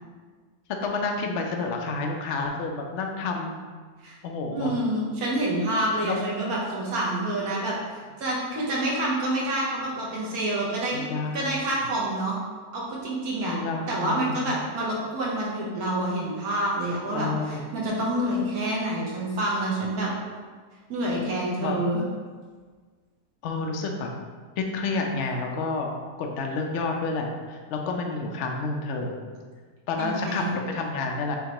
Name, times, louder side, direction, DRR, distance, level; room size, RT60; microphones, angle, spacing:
voice 1, 0.8-3.6 4.2-4.7 6.0-6.2 10.9-11.5 13.5-14.5 17.1-17.7 21.6-21.9 23.4-24.1 24.6-25.9 26.2-29.2 29.9-31.4, left 3 dB, 65° left, 2 dB, 0.7 m, -29 dB
voice 2, 4.5-11.0 11.3-12.4 12.7-13.6 13.9-20.1 20.9-22.0 30.0-30.5, right 1 dB, 70° right, -4 dB, 1.5 m, -27 dB
5.8 x 3.0 x 2.9 m, 1.5 s
omnidirectional pair, 1.7 m